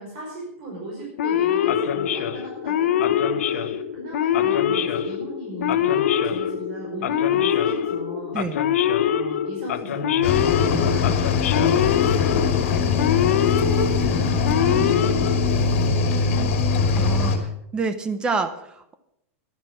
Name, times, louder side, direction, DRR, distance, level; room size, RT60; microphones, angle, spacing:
voice 1, 0.0-8.4 9.0-16.2 16.6-16.7, right 1 dB, 45° right, -3 dB, 5.1 m, -36 dB
Male speech man speaking / Siren, 1.2-15.9, left 9 dB, 80° left, 1.0 m, -24 dB
Cricket / Waves surf, 10.2-17.4, left 5 dB, 55° left, 2.6 m, -22 dB
voice 2, 17.0-18.9, right 4 dB, 10° right, 10 dB, 0.8 m, -28 dB
11.5 x 10.5 x 6.3 m, 0.78 s
supercardioid pair, 175°, 8 cm